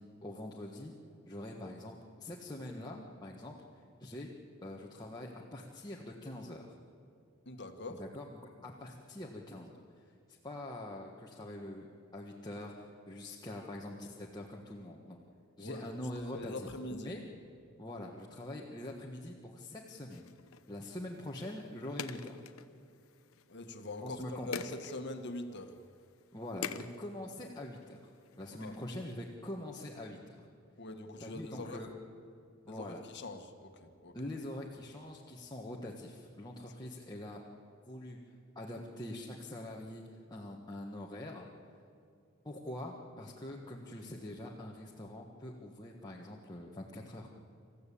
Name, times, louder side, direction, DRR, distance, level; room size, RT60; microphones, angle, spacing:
voice 1, 0.2-0.9 1.3-3.6 4.0-4.3 4.6-6.7 7.9-9.8 10.0-11.9 12.1-15.2 15.6-17.2 17.8-20.3 20.7-22.4 24.0-24.7 26.3-28.0 28.4-30.5 31.2-31.9 32.6-33.0 34.1-37.4 37.9-38.2 38.5-40.0 40.3-41.5 42.4-47.3, left 1 dB, 20° left, -3 dB, 1.6 m, -44 dB
voice 2, 7.5-8.0 15.6-15.9 16.3-17.1 23.5-25.7 28.6-28.7 30.8-31.8 32.7-32.9 33.1-34.2, left 2 dB, 55° left, 6 dB, 1.7 m, -43 dB
sound 1, 20.1-29.3, left 6 dB, 80° left, 0.9 m, -48 dB
27.5 x 15.0 x 8.6 m, 2.4 s
head